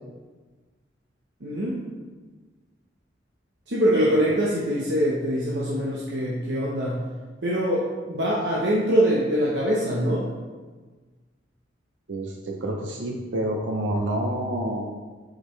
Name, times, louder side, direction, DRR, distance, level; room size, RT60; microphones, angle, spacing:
voice 1, 1.4-1.8 3.7-7.0 7.4-10.3, equal, 70° right, -5 dB, 0.9 m, -23 dB
voice 2, 12.1-14.9, right 1 dB, 90° right, 1 dB, 0.7 m, -28 dB
7.1 x 5.2 x 3.2 m, 1.4 s
head